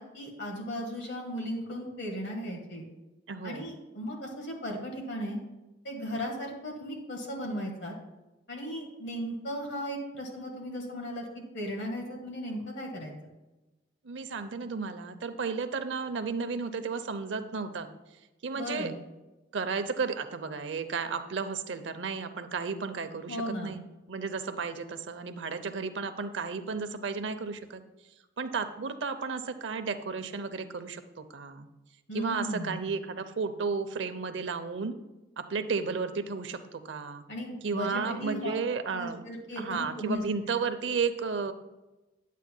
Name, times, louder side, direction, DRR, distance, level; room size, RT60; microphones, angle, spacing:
voice 1, 0.0-2.8 3.4-5.4 5.8-7.9 8.5-13.1 18.5-18.9 23.3-23.8 32.1-32.8 37.3-38.5 38.9-40.2, equal, 65° left, 0 dB, 1.6 m, -36 dB
voice 2, 3.3-3.7 14.0-17.9 18.4-18.9 19.5-23.8 24.1-27.8 28.4-31.7 32.1-35.0 35.4-37.2 37.6-39.2 39.6-41.5, right 5 dB, 80° right, 10 dB, 0.6 m, -33 dB
10.5 x 8.2 x 2.2 m, 1.1 s
head